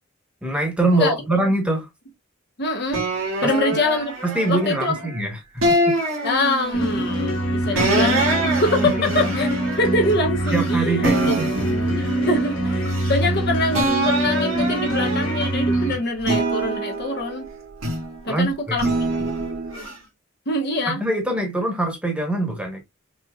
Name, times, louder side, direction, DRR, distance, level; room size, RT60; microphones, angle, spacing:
voice 1, 0.4-1.9 3.4-3.5 4.2-5.9 7.7-7.9 8.8-9.3 10.5-11.5 18.3-19.2 20.9-22.8, right 2 dB, 5° right, 1.2 m, -24 dB
voice 2, 2.6-3.0 3.4-4.1 4.5-5.1 6.2-9.5 9.8-11.4 12.0-17.5 18.2-18.8 20.5-21.0, left 2 dB, 50° left, 1.0 m, -24 dB
sound 1, 2.9-5.1 5.6-7.0 7.8-10.7 11.0-13.4 13.7-15.7 16.2-18.2 18.8-19.9, right 1 dB, 90° right, 1.8 m, -25 dB
sound 2, 6.7-16.0, right 1 dB, 70° left, 2.7 m, -24 dB
6.0 x 3.0 x 2.3 m
head